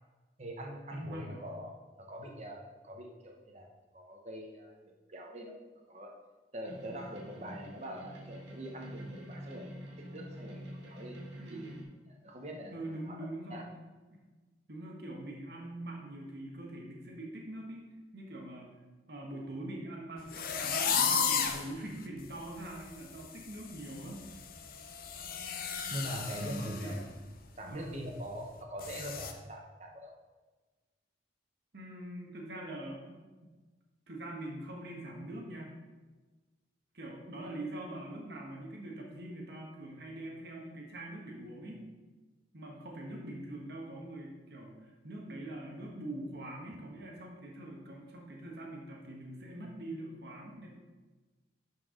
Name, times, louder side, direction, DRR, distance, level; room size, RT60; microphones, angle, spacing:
voice 1, 0.4-4.7 5.1-5.6 5.9-6.1 6.5-11.2 11.5-11.7 12.1-13.7 25.9-27.1 27.6-30.1, equal, 35° right, 1 dB, 1.0 m, -43 dB
voice 2, 0.9-1.5 11.4-11.9 12.7-13.7 14.1-14.2 14.7-18.7 19.1-24.2 26.3-27.1 27.7-28.0 31.7-33.2 34.1-35.7 36.9-41.9 42.5-50.7, right 1 dB, 55° right, -1 dB, 1.3 m, -43 dB
sound 1, 6.7-11.8, equal, 75° right, 1.6 m, -47 dB
sound 2, 20.3-21.7 22.2-22.3 22.7-23.0 23.2-26.9 27.3-27.4 27.9-28.0 28.8-29.3, left 6 dB, 50° left, 0.7 m, -33 dB
11.0 x 4.7 x 3.8 m, 1.3 s
head